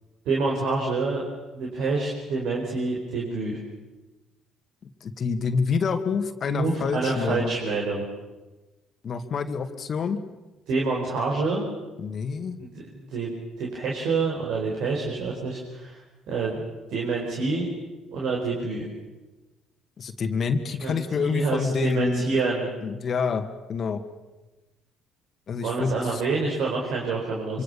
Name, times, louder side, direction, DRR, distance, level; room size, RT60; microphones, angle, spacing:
voice 1, 0.2-1.2 1.5-3.6 6.5-8.0 10.7-11.6 12.6-13.3 13.6-16.0 16.3-16.6 16.9-17.7 18.1-18.9 20.8-22.7 25.6-27.6, right 3 dB, 65° right, -2 dB, 4.9 m, -27 dB
voice 2, 5.0-7.5 9.0-10.2 12.0-12.6 20.0-22.2 22.8-24.0 25.5-26.2 27.5-27.6, left 5 dB, 45° left, 9 dB, 2.1 m, -27 dB
25.5 x 25.0 x 7.1 m, 1.1 s
hypercardioid pair, 50°, 0 cm